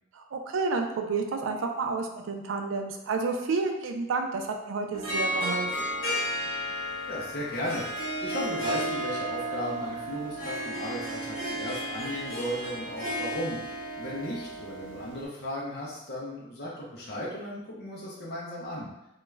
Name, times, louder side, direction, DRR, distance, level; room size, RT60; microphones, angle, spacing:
voice 1, 0.1-5.7, right 4 dB, 85° right, 4 dB, 0.4 m, -30 dB
Harp, 4.9-15.3, equal, 85° left, 0.9 m, -33 dB
voice 2, 7.1-18.9, equal, 50° left, -5 dB, 0.5 m, -36 dB
2.3 x 2.1 x 3.1 m, 0.91 s
head